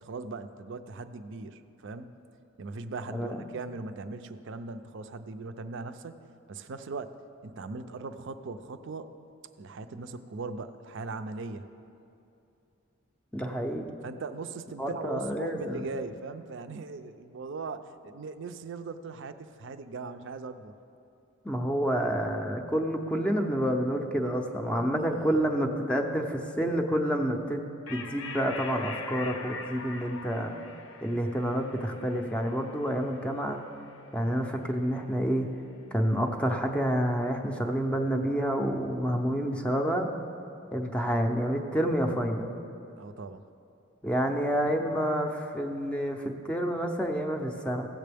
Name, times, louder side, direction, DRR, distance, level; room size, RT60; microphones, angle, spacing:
voice 1, 0.0-2.1 2.6-6.2 6.5-7.2 7.4-9.1 9.6-11.7 14.0-20.7 25.0-25.4 42.9-43.4, right 3 dB, 60° right, 10 dB, 0.4 m, -39 dB
voice 2, 3.1-3.5 13.3-13.9 14.8-15.9 21.4-30.5 31.0-33.6 34.1-35.5 35.9-40.1 40.7-42.6 44.0-47.9, equal, 5° left, 3 dB, 0.5 m, -29 dB
sound 1, 27.9-34.7, left 4 dB, 75° left, 0.7 m, -43 dB
16.0 x 7.5 x 3.4 m, 2.7 s
head